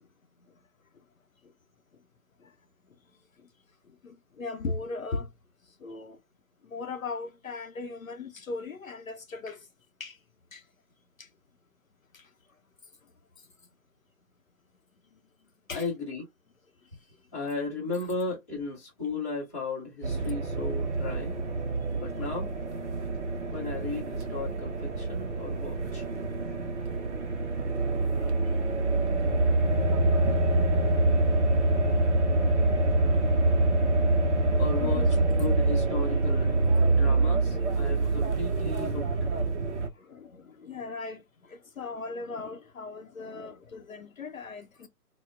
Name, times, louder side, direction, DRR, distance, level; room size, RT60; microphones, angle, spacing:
voice 1, 4.0-5.3 5.8-6.2 6.7-9.6 10.0-10.1 10.5-10.6 15.7-15.9 34.8-35.1 40.1-41.2 41.5-44.9, left 3 dB, 60° left, 0.6 m, -38 dB
voice 2, 15.7-16.2 17.3-21.3 21.9-22.5 23.5-26.1 34.6-36.6 36.9-39.1, left 3 dB, 10° left, 0.7 m, -35 dB
sound 1, 20.0-39.9, right 2 dB, 50° right, 0.5 m, -26 dB
4.4 x 2.0 x 2.3 m
figure-of-eight pair, 150°, 47 cm